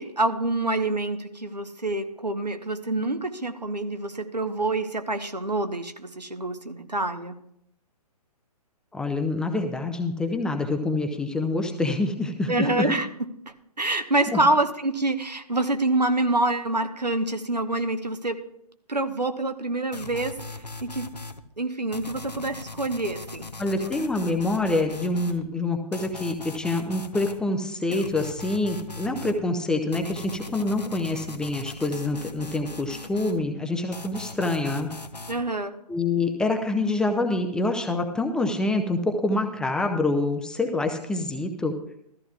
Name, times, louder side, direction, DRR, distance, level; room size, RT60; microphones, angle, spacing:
voice 1, 0.0-7.4 12.5-13.3 13.8-18.4 18.9-20.4 20.8-21.1 21.6-23.5 23.8-23.9 35.3-35.7, right 2 dB, 85° right, 7 dB, 1.2 m, -26 dB
voice 2, 8.9-12.9 14.3-14.4 23.6-34.9 35.9-41.7, left 2 dB, 5° left, 4 dB, 0.5 m, -26 dB
sound 1, 19.9-21.4 21.9-25.4 25.9-27.4 27.9-29.4 29.9-33.4 33.9-35.4, left 3 dB, 90° left, 0.9 m, -40 dB
15.0 x 13.5 x 2.4 m, 0.73 s
figure-of-eight pair, 125°, 20 cm